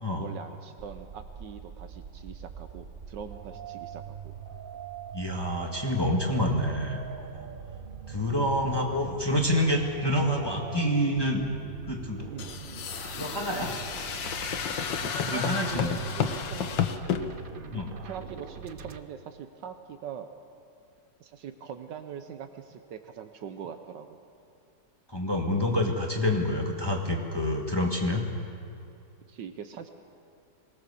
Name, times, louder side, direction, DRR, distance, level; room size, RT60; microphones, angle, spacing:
voice 1, 0.2-4.3 12.3-12.6 15.0-16.9 17.7-20.3 21.2-24.2 29.3-29.9, right 7 dB, 75° right, 8 dB, 1.5 m, -42 dB
sound 1, 0.8-19.0, right 6 dB, 60° right, 0.5 m, -43 dB
voice 2, 5.1-7.0 7.3-7.5 8.1-11.4 11.9-12.3 13.2-13.8 15.3-16.0 17.7-17.9 25.1-28.2, left 1 dB, 15° left, 1 dB, 1.6 m, -27 dB
sound 2, 12.4-17.2, left 7 dB, 80° left, 1.8 m, -31 dB
23.0 x 18.5 x 6.9 m, 2.5 s
omnidirectional pair, 2.0 m